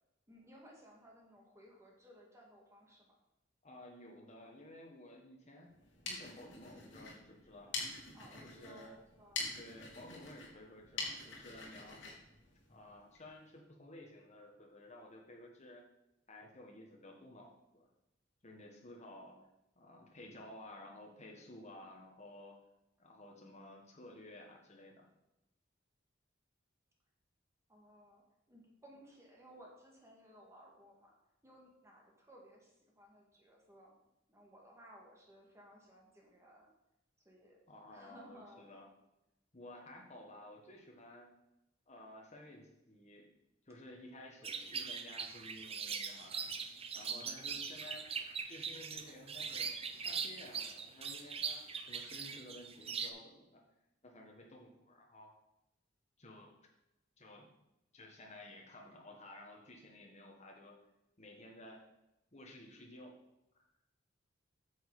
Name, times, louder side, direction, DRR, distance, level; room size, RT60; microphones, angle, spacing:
voice 1, 0.3-3.1 8.1-9.6 27.7-28.2 28.5-31.2 31.4-33.9 34.3-36.7 37.3-37.6 37.9-38.7 47.0-47.5, equal, 15° right, -1 dB, 2.2 m, -59 dB
voice 2, 3.6-5.7 6.0-7.8 8.4-9.0 9.5-12.0 12.7-15.9 16.3-17.9 18.4-19.4 19.7-22.6 23.0-25.1 37.7-38.9 39.5-41.3 41.9-43.3 43.6-46.5 46.9-48.1 48.5-49.8 50.0-53.6 54.0-55.3 56.2-56.5 57.2-57.5 57.9-60.8 61.2-61.8 62.3-63.2, left 1 dB, 35° left, 0 dB, 1.7 m, -54 dB
sound 1, 5.7-13.2, left 3 dB, 70° left, 2.5 m, -45 dB
sound 2, 44.4-53.1, right 6 dB, 30° right, 0.7 m, -41 dB
9.4 x 6.5 x 5.0 m, 0.88 s
head